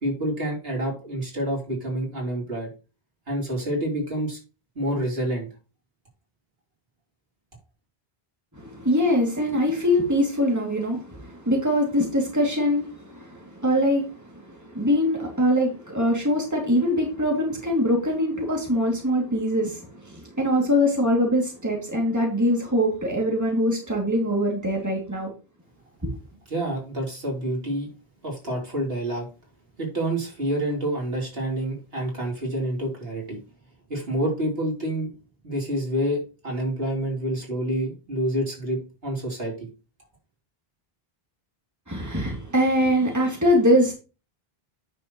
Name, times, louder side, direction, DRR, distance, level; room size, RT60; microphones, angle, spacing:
voice 1, 0.0-2.7 3.3-4.4 4.8-5.5 26.5-27.9 28.2-29.3 29.8-33.4 33.9-35.1 35.4-39.7, right 1 dB, 70° right, 3.9 m, -28 dB
voice 2, 8.5-25.3 26.0-26.1 41.9-43.9, equal, 15° right, 2.7 m, -23 dB
9.6 x 6.8 x 3.1 m
omnidirectional pair, 1.0 m